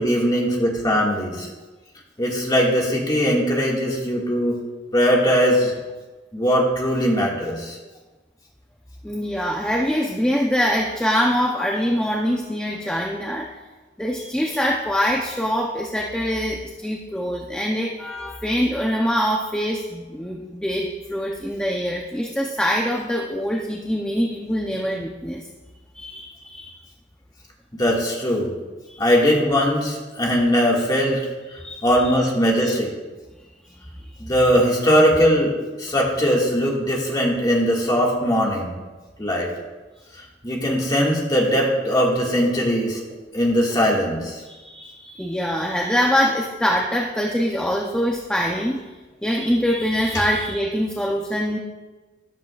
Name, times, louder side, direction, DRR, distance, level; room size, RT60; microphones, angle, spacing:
voice 1, 0.0-1.5 2.2-4.6 4.9-5.7 6.3-7.8 27.8-28.5 29.0-31.2 31.8-32.9 34.2-35.5 35.8-38.7 39.2-39.5 40.4-43.0 43.3-44.4, equal, 20° left, -2 dB, 1.9 m, -20 dB
voice 2, 9.0-13.6 14.0-25.5 25.9-26.7 28.9-29.0 31.6-32.1 33.7-34.1 44.5-48.8 49.2-51.6, equal, 5° left, -1 dB, 0.6 m, -24 dB
14.0 x 11.0 x 2.4 m, 1.2 s
head